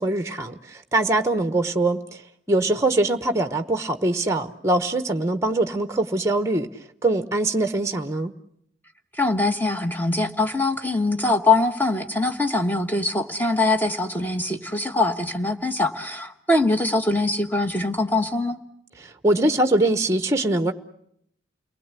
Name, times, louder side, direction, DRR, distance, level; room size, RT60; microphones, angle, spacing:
voice 1, 0.0-2.2 2.5-6.7 7.0-8.3 19.0-20.7, right 2 dB, 15° right, 1.0 m, -22 dB
voice 2, 9.2-18.6, left 2 dB, 10° left, 1.2 m, -23 dB
29.5 x 20.0 x 8.2 m
head